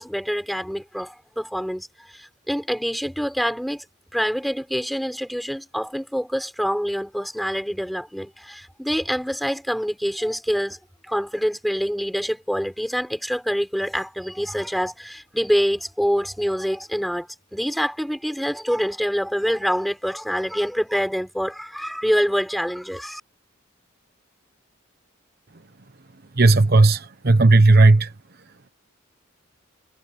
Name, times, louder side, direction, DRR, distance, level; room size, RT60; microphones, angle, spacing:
voice 1, 0.0-1.9 2.1-3.8 4.1-10.8 11.1-23.2, equal, ahead, 5.3 m, -26 dB
voice 2, 26.4-28.1, right 2 dB, 50° right, 1.0 m, -14 dB
head